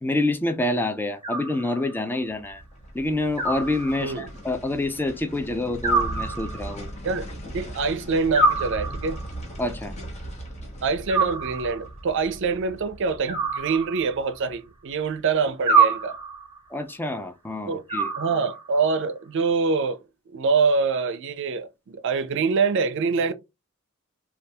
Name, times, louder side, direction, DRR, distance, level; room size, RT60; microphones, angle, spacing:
voice 1, 0.0-2.6 2.9-6.9 9.6-9.9 16.7-18.1, left 2 dB, 10° left, 0.4 m, -27 dB
Animal, 1.2-2.1 3.4-4.4 5.8-6.9 8.3-9.3 11.1-12.0 13.3-14.4 15.7-16.6 17.9-18.8, right 4 dB, 25° right, 0.8 m, -25 dB
sound 1, 2.3-15.4 15.7-15.8, right 1 dB, 35° left, 0.9 m, -39 dB
voice 2, 7.5-9.2 10.8-16.2 17.7-17.8 18.2-20.0 20.3-23.3, right 4 dB, 60° right, 0.5 m, -25 dB
3.4 x 2.3 x 2.7 m
head